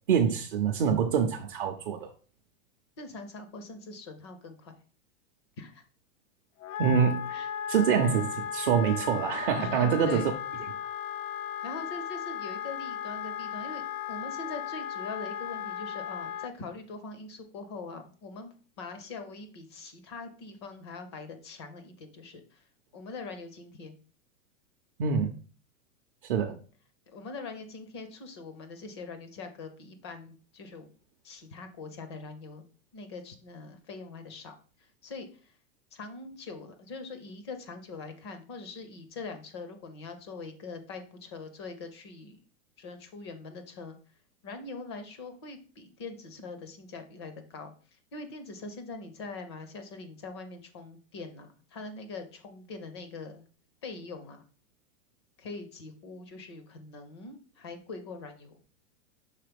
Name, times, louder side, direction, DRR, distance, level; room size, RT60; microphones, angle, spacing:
voice 1, 0.1-2.1 6.8-7.4 7.7-10.3 25.0-25.3 26.2-26.6, right 7 dB, 40° right, 3 dB, 0.6 m, -25 dB
voice 2, 3.0-4.8 5.6-5.8 7.3-7.5 9.6-10.3 11.6-22.7 22.9-23.9 26.4-26.6 27.1-30.9 31.2-32.6 32.9-35.5 35.9-42.4 42.8-44.0 44.4-53.4 53.8-54.4 55.4-58.6, left 3 dB, 20° left, 8 dB, 0.5 m, -43 dB
Wind instrument woodwind instrument, 6.6-16.5, left 9 dB, 75° left, 0.5 m, -36 dB
5.8 x 3.8 x 5.1 m, 0.39 s
supercardioid pair, 175°, 40 cm